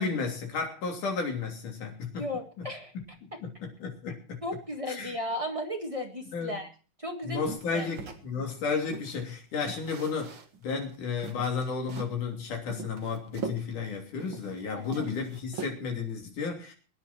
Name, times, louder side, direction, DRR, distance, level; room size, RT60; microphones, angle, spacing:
voice 1, 0.0-2.2 2.9-3.0 3.4-4.4 5.0-5.1 6.3-6.6 7.2-10.3 10.6-16.7, left 5 dB, 65° left, 2 dB, 4.6 m, -33 dB
voice 2, 2.1-2.9 4.4-6.7 7.0-7.5 7.7-7.9 14.7-15.0, left 1 dB, 20° right, 2 dB, 0.8 m, -35 dB
sound 1, 7.5-9.2 9.7-10.6 10.9-11.0 11.2-12.2 12.7-14.6 14.9-16.1, right 5 dB, 45° right, 1.8 m, -41 dB
23.0 x 9.8 x 4.4 m, 0.38 s
omnidirectional pair, 3.9 m